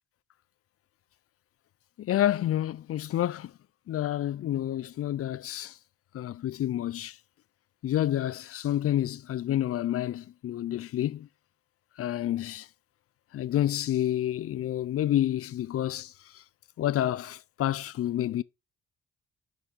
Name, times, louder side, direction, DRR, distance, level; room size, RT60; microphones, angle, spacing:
voice 1, 2.0-3.5 3.9-5.7 6.1-7.2 7.8-11.3 12.0-12.7 13.3-16.1 16.8-18.4, left 12 dB, 50° left, 0.4 m, -29 dB
6.2 x 6.0 x 4.9 m
cardioid pair, 90°, 30 cm